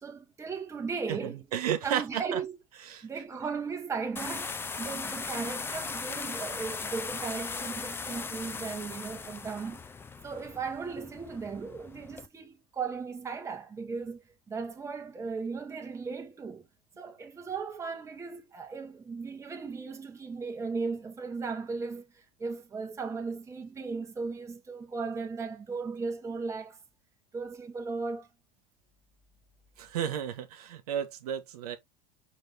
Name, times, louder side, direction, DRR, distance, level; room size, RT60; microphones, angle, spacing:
voice 1, 0.0-1.4 1.8-2.6 3.0-9.8 10.2-16.7 17.0-26.8 27.3-28.3, right 5 dB, 15° right, 1.0 m, -36 dB
voice 2, 1.1-2.0 2.3-2.4 2.9-3.1 29.8-31.8, right 9 dB, 90° right, 1.0 m, -32 dB
sound 1, 4.2-12.3, left 5 dB, 10° left, 0.3 m, -38 dB
5.3 x 2.5 x 3.3 m
supercardioid pair, 125°, 19 cm